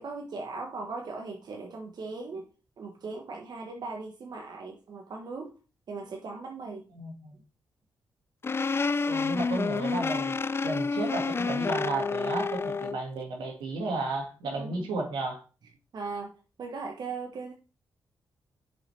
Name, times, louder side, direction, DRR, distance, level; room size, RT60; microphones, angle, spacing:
voice 1, 0.0-2.5 2.8-5.5 5.9-6.9 14.4-14.9 15.9-16.3 16.6-17.5, right 3 dB, 65° right, 1 dB, 1.1 m, -38 dB
voice 2, 6.9-7.4 9.1-10.3 10.6-15.4, right 3 dB, 85° right, 1 dB, 1.8 m, -33 dB
sound 1, 8.4-13.0, left 4 dB, 30° left, 0.4 m, -29 dB
7.5 x 5.2 x 3.3 m, 0.35 s
supercardioid pair, 45°, 8 cm